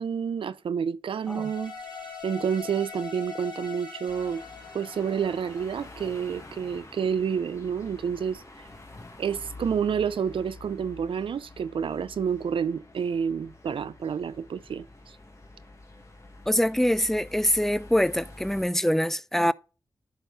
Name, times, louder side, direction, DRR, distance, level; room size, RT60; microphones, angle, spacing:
voice 1, 0.0-1.9 2.2-4.4 4.7-8.7 9.2-15.2, right 7 dB, 80° right, 0.4 m, -29 dB
sound 1, 1.2-6.4, left 5 dB, 55° left, 3.9 m, -42 dB
sound 2, 4.1-18.6, left 2 dB, 35° left, 1.7 m, -48 dB
voice 2, 16.5-19.5, equal, 5° left, 0.3 m, -24 dB
11.0 x 3.7 x 4.0 m
cardioid pair, 60°, 9 cm